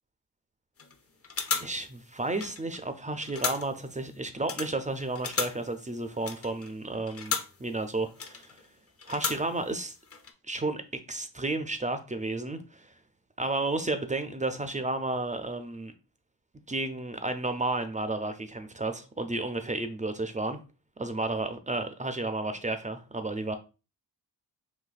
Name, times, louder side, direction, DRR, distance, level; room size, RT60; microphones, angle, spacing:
sound 1, 0.8-1.0 1.2-2.9 3.1-3.9 4.4-7.7 8.1-8.7 9.0-9.8 10.0-10.3, left 5 dB, 35° left, 0.5 m, -35 dB
voice 1, 1.6-7.3 7.6-8.6 9.1-9.9 10.5-10.8 11.1-12.9 13.4-15.9 16.7-20.6 21.0-23.6, right 2 dB, 20° right, 0.3 m, -32 dB
4.0 x 2.7 x 2.4 m
cardioid pair, 65°, 42 cm